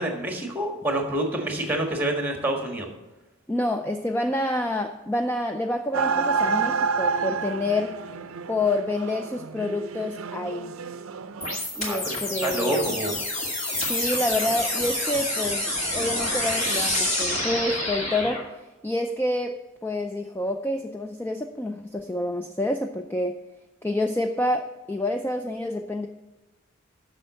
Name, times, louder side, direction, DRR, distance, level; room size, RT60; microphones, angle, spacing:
voice 1, 0.0-2.9 11.8-13.1, right 1 dB, 10° right, 3 dB, 1.5 m, -27 dB
voice 2, 3.5-8.0 8.5-10.7 11.7-12.9 13.8-15.7 15.9-18.4 18.8-19.5 19.8-23.3 23.8-26.1, left 1 dB, 10° left, 5 dB, 0.4 m, -28 dB
sound 1, 5.9-11.6, right 5 dB, 85° right, 0.5 m, -29 dB
sound 2, 11.4-18.4, left 1 dB, 35° left, 2.3 m, -27 dB
7.8 x 6.3 x 7.7 m, 1.1 s
head